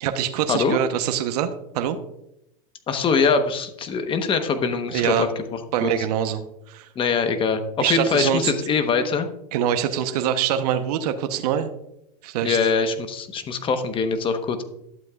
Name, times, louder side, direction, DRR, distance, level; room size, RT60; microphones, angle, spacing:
voice 1, 0.0-1.5 1.7-2.0 4.9-5.3 5.7-6.9 7.8-8.5 9.5-11.7 12.2-12.6, right 10 dB, 70° right, 7 dB, 0.9 m, -24 dB
voice 2, 2.9-6.1 6.9-9.3 12.4-14.6, left 5 dB, 25° left, 8 dB, 1.1 m, -23 dB
12.0 x 7.7 x 2.4 m, 0.81 s
supercardioid pair, 125°, 21 cm